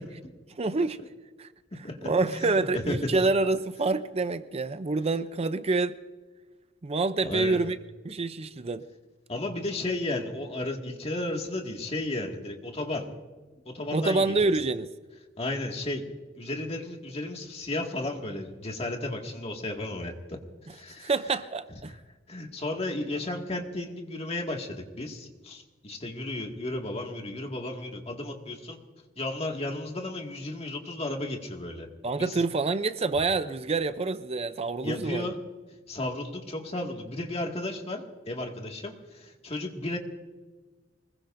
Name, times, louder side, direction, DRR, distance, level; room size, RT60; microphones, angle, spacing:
voice 1, 0.6-1.0 1.4-1.5 2.0-6.0 6.8-7.8 8.0-8.8 13.9-14.9 21.0-21.9 32.0-35.3, right 3 dB, 35° right, 0.5 m, -27 dB
voice 2, 1.8-3.0 7.2-7.6 9.3-13.1 13.7-14.5 15.4-16.0 16.4-20.4 20.7-21.1 22.3-28.8 29.2-31.9 32.2-32.4 34.8-35.4 35.9-40.0, left 2 dB, 35° left, 2.0 m, -34 dB
24.5 x 21.5 x 2.6 m
head